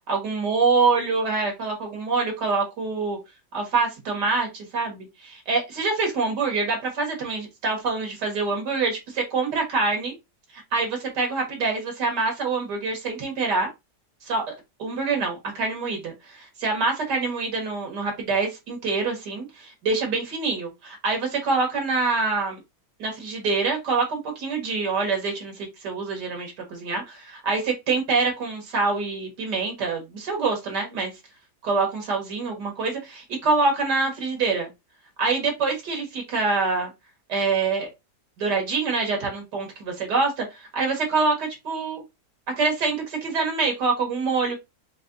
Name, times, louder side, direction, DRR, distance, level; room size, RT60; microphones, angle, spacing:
voice 1, 0.1-3.2 3.5-10.1 10.5-13.7 14.2-14.5 14.8-22.6 23.0-31.1 31.6-34.7 35.2-36.9 37.3-37.9 38.4-42.0 42.6-44.6, right 4 dB, 85° right, 2.1 m, -25 dB
5.3 x 2.7 x 2.5 m
omnidirectional pair, 1.8 m